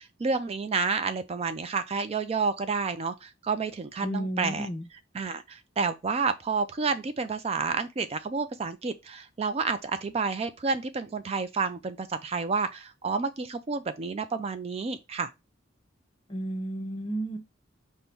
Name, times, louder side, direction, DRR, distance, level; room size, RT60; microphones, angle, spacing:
voice 1, 0.0-4.7 5.1-15.3, right 4 dB, 30° right, 0.3 m, -30 dB
voice 2, 4.0-4.9 16.3-17.4, right 1 dB, 25° left, 0.6 m, -32 dB
5.3 x 2.1 x 4.4 m
head